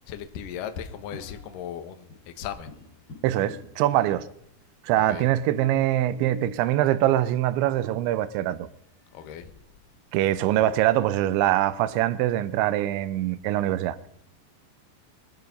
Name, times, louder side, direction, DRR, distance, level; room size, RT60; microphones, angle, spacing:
voice 1, 0.1-2.7 5.1-5.3 9.1-9.5, left 9 dB, 65° left, 2.4 m, -37 dB
sound 1, 0.9-1.7 2.1-3.9 4.6-4.7 4.9-5.0 5.7-6.6 8.4-8.5 9.0-9.5 9.9-10.0 10.5-11.4, left 4 dB, 30° left, 5.9 m, -48 dB
voice 2, 3.2-4.2 4.8-8.7 10.1-14.1, right 13 dB, 85° right, 3.1 m, -23 dB
22.0 x 12.0 x 5.3 m
omnidirectional pair, 5.2 m